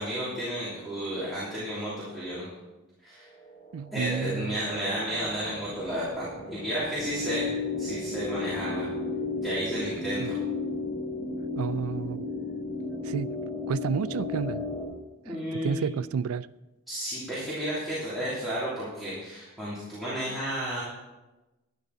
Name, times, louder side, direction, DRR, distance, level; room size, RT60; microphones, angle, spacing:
voice 1, 0.0-2.5 3.0-3.2 3.9-7.5 7.8-8.9 9.3-10.4 15.2-15.9 16.9-20.8, equal, ahead, 3.0 m, -32 dB
sound 1, 3.4-14.9, left 3 dB, 25° left, 3.4 m, -34 dB
voice 2, 3.7-4.6 10.2-10.3 11.6-12.2 13.0-13.4 13.7-14.7 15.2-16.5, right 6 dB, 75° right, 0.3 m, -31 dB
12.0 x 11.0 x 4.1 m
head